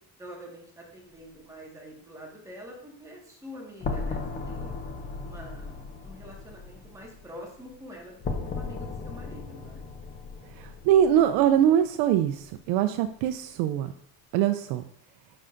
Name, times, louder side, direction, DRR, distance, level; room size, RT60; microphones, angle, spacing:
voice 1, 0.2-4.8 5.2-9.8, equal, 5° right, -3 dB, 1.6 m, -46 dB
sound 1, 3.8-11.8, left 4 dB, 20° left, 0.5 m, -36 dB
voice 2, 10.6-13.9 14.3-14.8, right 10 dB, 75° right, 8 dB, 0.6 m, -23 dB
10.0 x 6.3 x 2.6 m, 0.68 s
cardioid pair, 165°, 45 cm